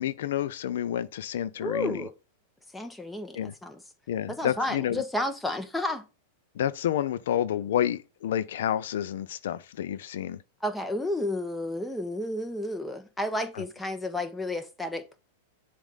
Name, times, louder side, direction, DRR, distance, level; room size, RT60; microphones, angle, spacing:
voice 1, 0.0-2.1 3.3-3.5 4.1-5.0 6.6-10.4 13.5-13.6, left 10 dB, 75° left, 0.4 m, -29 dB
voice 2, 1.6-2.1 2.7-3.8 4.3-6.0 10.6-15.2, left 1 dB, 5° left, 0.9 m, -31 dB
7.2 x 2.5 x 5.4 m
hypercardioid pair, 125°, 0 cm